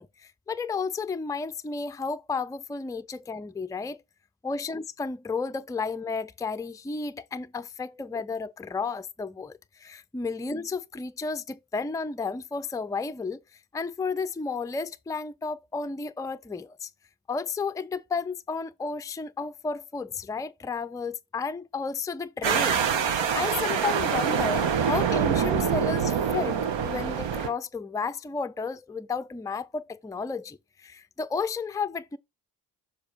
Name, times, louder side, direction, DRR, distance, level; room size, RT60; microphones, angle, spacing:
voice 1, 0.0-4.0 4.4-13.4 13.7-16.9 17.3-22.8 23.3-32.2, left 4 dB, 5° left, 0.5 m, -32 dB
sound 1, 22.4-27.5, right 7 dB, 65° right, 1.3 m, -25 dB
6.9 x 3.5 x 4.5 m
supercardioid pair, 45°, 48 cm